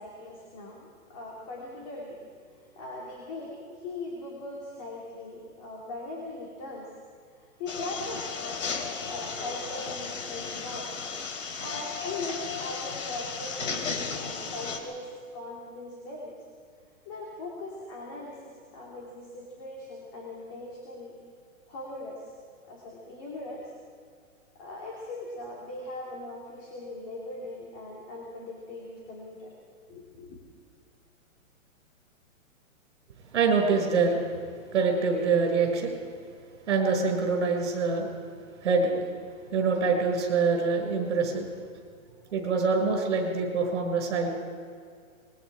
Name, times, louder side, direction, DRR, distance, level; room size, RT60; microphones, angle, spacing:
voice 1, 0.0-6.9 7.4-10.9 11.6-16.3 17.1-21.1 21.7-22.3 22.7-23.7 24.6-29.5 29.9-30.4, left 2 dB, 25° left, -3 dB, 2.7 m, -40 dB
sound 1, 7.7-14.8, left 5 dB, 65° left, 3.1 m, -35 dB
voice 2, 33.3-34.3 34.7-35.9 36.7-38.1 38.6-39.0 39.5-41.5 42.3-44.3, right 4 dB, 55° right, 3 dB, 5.8 m, -25 dB
26.0 x 21.5 x 4.9 m, 2.2 s
hypercardioid pair, 175°, 41 cm